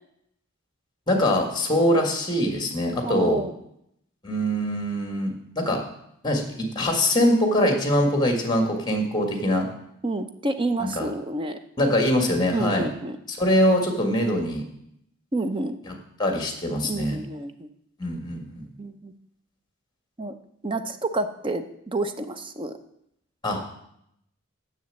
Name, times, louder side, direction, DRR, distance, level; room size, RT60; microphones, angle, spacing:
voice 1, 1.1-3.4 4.2-5.8 6.2-9.7 10.8-11.1 11.8-12.9 13.3-14.6 15.8-15.9 16.2-17.2 18.0-18.6 23.4-23.6, equal, 20° left, 3 dB, 1.6 m, -23 dB
voice 2, 3.0-3.5 10.0-11.6 12.5-13.2 15.3-15.8 16.8-17.7 18.8-19.1 20.2-20.4 20.6-22.8, right 2 dB, 25° right, 9 dB, 0.6 m, -29 dB
7.1 x 6.9 x 7.5 m, 0.76 s
head